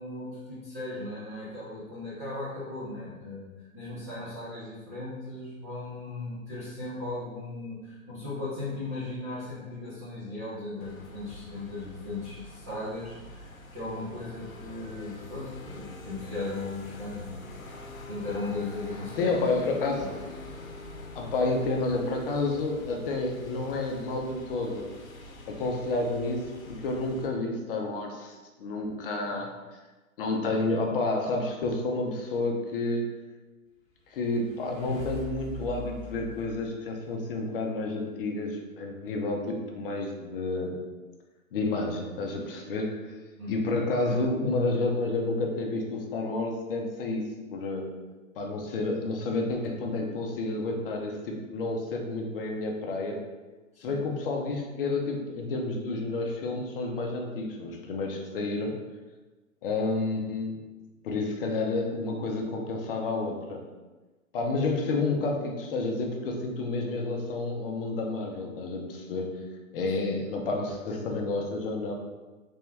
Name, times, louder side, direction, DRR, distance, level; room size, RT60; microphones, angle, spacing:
voice 1, 0.0-17.4 18.1-19.4 19.9-20.1 29.2-29.4 43.4-43.6 44.1-44.2 53.7-54.0 69.8-69.9, left 2 dB, 15° right, -12 dB, 0.3 m, -37 dB
sound 1, 10.8-27.3, left 1 dB, 75° left, 0.8 m, -45 dB
voice 2, 19.2-20.2 21.1-24.9 25.5-29.5 30.2-33.1 34.1-40.8 41.5-43.1 43.5-47.2 47.5-47.9 48.4-53.2 53.8-58.8 59.6-60.6 61.0-63.6 64.3-69.4 69.7-71.9, left 2 dB, 45° left, 1 dB, 0.6 m, -30 dB
sound 2, 33.9-37.5, left 1 dB, 25° left, 1.1 m, -43 dB
3.5 x 2.8 x 3.4 m, 1.2 s
hypercardioid pair, 125°, 41 cm